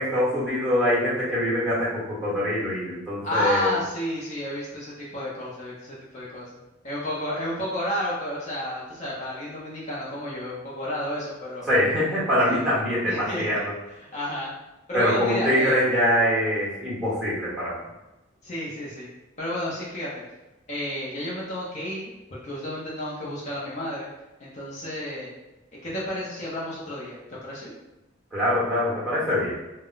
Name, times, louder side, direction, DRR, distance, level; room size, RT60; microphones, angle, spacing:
voice 1, 0.0-3.8 11.7-13.7 14.9-17.8 28.3-29.5, equal, 5° right, -9 dB, 1.0 m, -24 dB
voice 2, 3.2-11.7 12.5-12.6 13.1-13.4 14.1-14.5 14.9-15.8 18.4-19.1 19.4-20.2 20.7-24.1 24.4-25.3 25.8-27.7, left 1 dB, 35° left, -7 dB, 0.6 m, -31 dB
2.1 x 2.1 x 3.8 m, 1.0 s
head